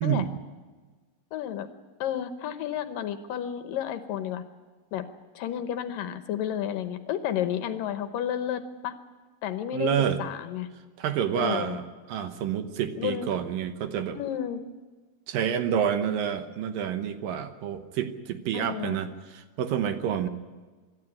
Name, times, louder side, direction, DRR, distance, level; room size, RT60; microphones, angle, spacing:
voice 1, 1.3-1.7 2.0-4.4 4.9-5.1 5.4-8.9 9.4-9.9 10.2-10.7 11.4-11.8 13.0-13.3 14.1-14.6 18.5-19.0, left 10 dB, 70° left, 10 dB, 2.4 m, -31 dB
voice 2, 9.7-10.2 11.0-11.8 12.1-14.2 15.3-20.3, right 9 dB, 70° right, 9 dB, 2.6 m, -28 dB
25.5 x 12.5 x 9.8 m, 1.3 s
omnidirectional pair, 4.4 m